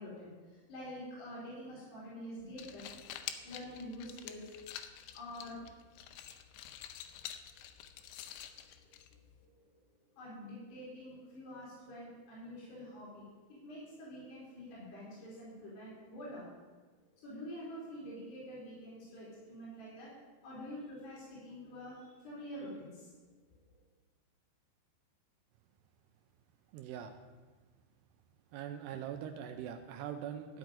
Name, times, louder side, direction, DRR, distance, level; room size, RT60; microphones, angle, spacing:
voice 1, 0.0-2.9 3.4-4.7 5.1-5.6 8.3-8.4 8.6-9.6 10.2-16.6 17.0-20.1 20.4-23.1 23.5-23.6, equal, 60° left, -7 dB, 5.2 m, -47 dB
sound 1, 2.4-9.4, left 10 dB, 85° left, 2.9 m, -48 dB
voice 2, 26.7-27.2 28.5-30.6, right 9 dB, 90° right, 6 dB, 2.4 m, -42 dB
12.5 x 5.9 x 9.2 m, 1.3 s
omnidirectional pair, 5.4 m